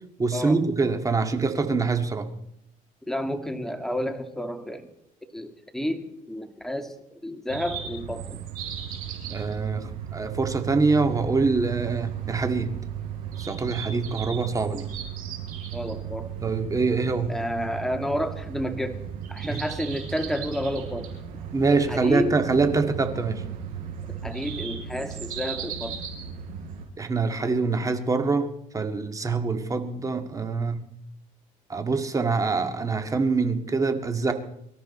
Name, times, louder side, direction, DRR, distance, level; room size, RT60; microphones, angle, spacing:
voice 1, 0.2-2.3 9.3-12.7 13.4-14.9 16.4-17.3 19.4-19.6 21.5-23.4 27.0-30.8 31.7-34.3, right 4 dB, 20° right, 7 dB, 1.9 m, -25 dB
voice 2, 3.1-4.9 5.3-6.9 7.2-8.4 15.7-16.3 17.3-19.0 19.3-21.1 21.7-22.4 24.2-26.0, equal, 5° left, 6 dB, 2.0 m, -30 dB
sound 1, 7.5-26.8, right 8 dB, 75° right, 4.6 m, -35 dB
24.0 x 13.0 x 4.3 m, 0.80 s
cardioid pair, 110°, 15 cm